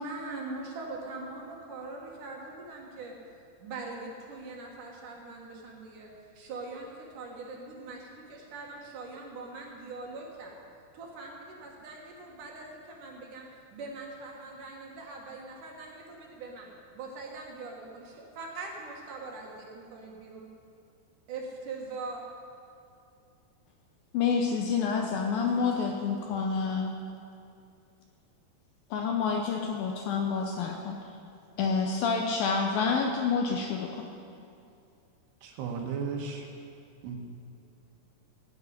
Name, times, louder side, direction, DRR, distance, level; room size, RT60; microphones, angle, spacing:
voice 1, 0.0-3.1 3.6-6.1 6.3-10.6 10.9-20.5 21.3-22.2, right 3 dB, 60° right, -1 dB, 2.6 m, -42 dB
voice 2, 24.1-26.9 28.9-31.0 31.6-34.0, left 5 dB, 75° left, 2 dB, 2.2 m, -28 dB
voice 3, 35.4-36.5 37.0-37.2, right 5 dB, 75° right, 2 dB, 3.4 m, -34 dB
16.5 x 6.6 x 9.6 m, 2.5 s
omnidirectional pair, 4.9 m